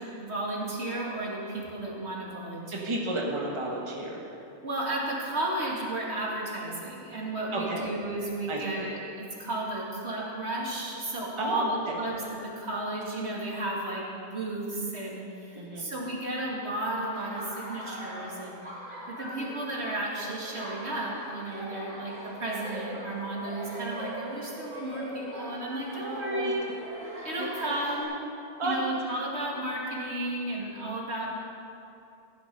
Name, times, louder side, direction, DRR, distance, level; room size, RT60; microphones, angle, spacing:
voice 1, 0.0-2.9 4.6-18.6 19.1-26.6 27.2-28.2 28.6-31.3, right 1 dB, 65° right, -3 dB, 2.4 m, -33 dB
voice 2, 2.7-4.4 7.5-7.9 8.5-8.9 11.4-12.0 15.5-15.9 25.9-26.5 27.4-27.5 28.6-28.8, right 2 dB, 25° right, -2 dB, 1.4 m, -33 dB
Laughter, 17.1-28.0, equal, 45° right, 2.8 m, -41 dB
15.5 x 10.0 x 5.4 m, 2.7 s
omnidirectional pair, 1.2 m